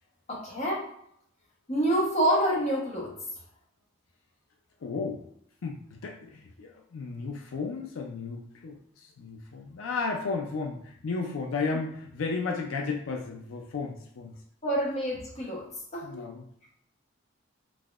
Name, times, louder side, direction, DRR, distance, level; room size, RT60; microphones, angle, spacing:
voice 1, 0.3-0.8 1.7-3.1 14.6-15.6 15.9-16.2, right 1 dB, 35° left, -4 dB, 1.0 m, -27 dB
voice 2, 4.8-5.2 5.6-14.3 16.0-16.5, left 4 dB, 85° left, 2 dB, 0.4 m, -34 dB
4.0 x 2.7 x 2.4 m, 0.69 s
head